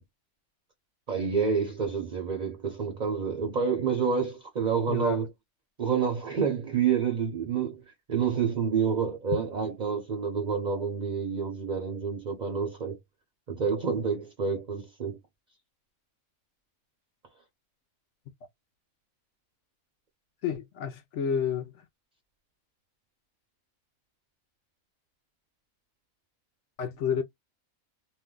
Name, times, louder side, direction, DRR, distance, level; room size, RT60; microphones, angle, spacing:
voice 1, 1.1-5.3 5.8-7.8 8.1-13.0 13.5-15.2, right 6 dB, 45° right, 0.6 m, -28 dB
voice 2, 4.9-5.2 20.4-21.8 26.8-27.2, left 7 dB, 65° left, 0.8 m, -30 dB
2.6 x 2.2 x 3.6 m
omnidirectional pair, 1.5 m